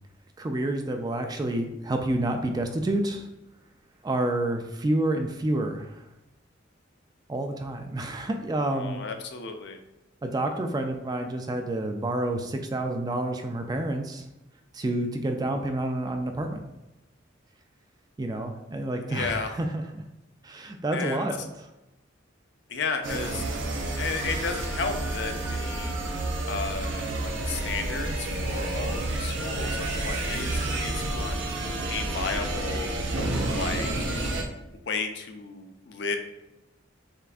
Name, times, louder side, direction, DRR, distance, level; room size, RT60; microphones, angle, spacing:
voice 1, 0.4-3.3 4.0-6.1 7.3-9.0 10.2-14.3 14.7-16.7 18.2-20.0 20.4-21.7, right 1 dB, 20° right, 5 dB, 0.3 m, -29 dB
voice 2, 8.7-9.8 19.1-19.5 20.9-21.3 22.7-23.5 24.0-25.9 26.5-31.4 31.9-32.9 33.5-34.1 34.9-36.2, left 4 dB, 60° left, 6 dB, 0.5 m, -33 dB
sound 1, 23.0-34.4, right 2 dB, 75° right, 0.7 m, -30 dB
6.5 x 2.5 x 2.4 m, 0.95 s
head